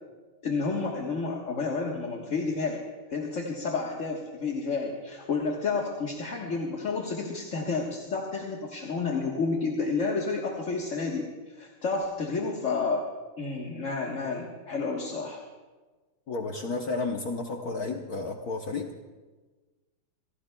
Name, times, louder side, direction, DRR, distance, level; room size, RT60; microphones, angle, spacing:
voice 1, 0.4-2.8 3.1-13.0 13.4-15.4, left 4 dB, 40° left, -1 dB, 1.4 m, -30 dB
voice 2, 16.3-18.9, left 3 dB, 55° left, 3 dB, 1.1 m, -32 dB
30.0 x 16.5 x 2.3 m, 1.3 s
omnidirectional pair, 2.4 m